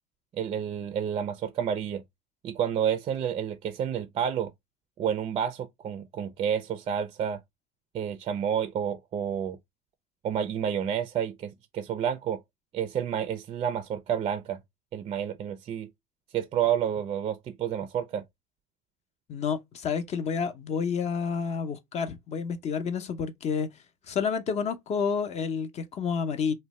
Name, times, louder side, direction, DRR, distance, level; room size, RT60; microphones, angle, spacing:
voice 1, 0.3-2.0 2.4-4.5 5.0-7.4 7.9-9.6 10.2-12.4 12.7-14.6 14.9-15.9 16.3-18.2, right 9 dB, 35° right, 0.3 m, -30 dB
voice 2, 19.3-23.7 24.1-26.5, left 6 dB, 40° left, 0.5 m, -29 dB
2.6 x 2.1 x 3.0 m
supercardioid pair, 95°, 17 cm